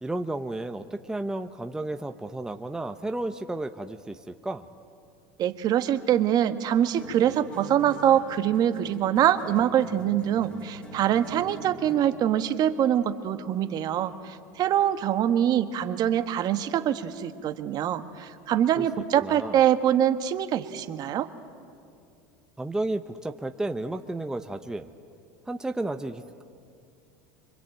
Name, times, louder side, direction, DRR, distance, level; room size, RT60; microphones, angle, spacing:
voice 1, 0.0-4.6 18.8-18.9 19.2-19.6 22.6-24.9 25.5-26.4, right 2 dB, 5° right, 7 dB, 0.9 m, -32 dB
voice 2, 5.4-21.3, right 10 dB, 45° right, 9 dB, 1.4 m, -24 dB
sound 1, 6.9-12.3, right 1 dB, 10° left, 2.7 m, -45 dB
26.0 x 23.5 x 9.0 m, 2.4 s
supercardioid pair, 115°, 10 cm